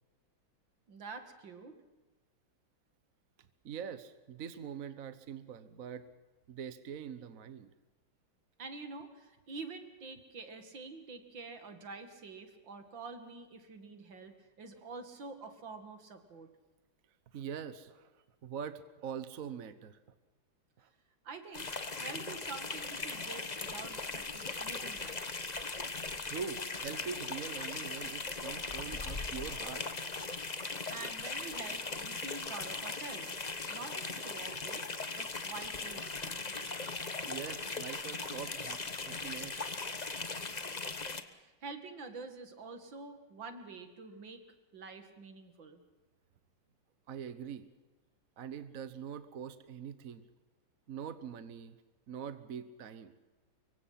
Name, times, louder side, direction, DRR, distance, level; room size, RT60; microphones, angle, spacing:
voice 1, 0.9-1.7 8.6-16.5 21.2-21.7 22.0-25.2 30.9-33.3 33.7-34.9 35.2-36.4 41.2-44.4 44.7-45.8, right 4 dB, 70° right, 7 dB, 2.8 m, -47 dB
voice 2, 3.6-6.1 6.5-7.7 17.3-18.1 18.4-20.0 20.8-20.9 23.0-23.4 26.3-29.9 37.3-39.6 47.1-47.7 48.4-50.3 50.9-51.8 52.1-53.1, right 7 dB, 50° right, 11 dB, 1.3 m, -43 dB
sound 1, 21.5-41.2, left 3 dB, 25° left, 1.1 m, -39 dB
25.5 x 23.5 x 5.8 m, 1.2 s
omnidirectional pair, 2.1 m